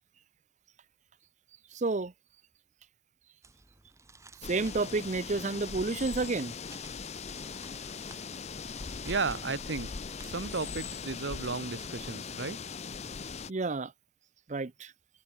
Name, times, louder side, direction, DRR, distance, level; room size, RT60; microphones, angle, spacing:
voice 1, 1.7-2.1 4.5-6.5 13.5-13.9 14.5-14.9, right 3 dB, 40° right, 0.6 m, -30 dB
sound 1, 3.4-13.1, right 3 dB, 15° right, 4.0 m, -56 dB
sound 2, 4.4-13.5, left 5 dB, 35° left, 0.6 m, -40 dB
voice 2, 9.0-9.9 10.2-12.6, right 4 dB, 80° right, 1.1 m, -34 dB
head